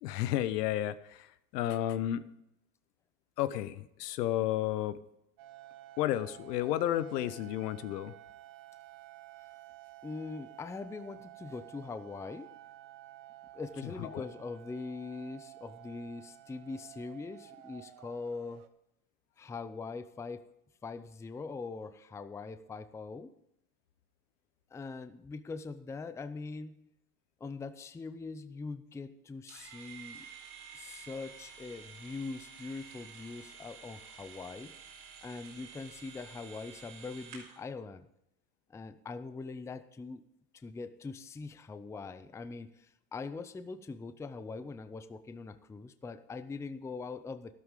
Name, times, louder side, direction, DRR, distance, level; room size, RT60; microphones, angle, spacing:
voice 1, 0.0-1.3 1.5-2.2 3.4-5.0 6.0-8.1 14.1-14.2, left 12 dB, 80° left, 14 dB, 1.0 m, -32 dB
sound 1, 5.4-18.7, right 15 dB, 55° right, 1.2 m, -52 dB
voice 2, 10.0-12.5 13.5-18.7 19.4-20.5 20.8-23.3 24.7-26.8 27.4-30.3 30.7-34.7 35.2-38.1 38.7-40.2 40.5-47.6, left 4 dB, 5° left, 12 dB, 0.5 m, -42 dB
sound 2, 29.5-37.6, right 6 dB, 75° right, 4.2 m, -51 dB
12.5 x 12.5 x 3.8 m, 0.81 s
supercardioid pair, 105°, 48 cm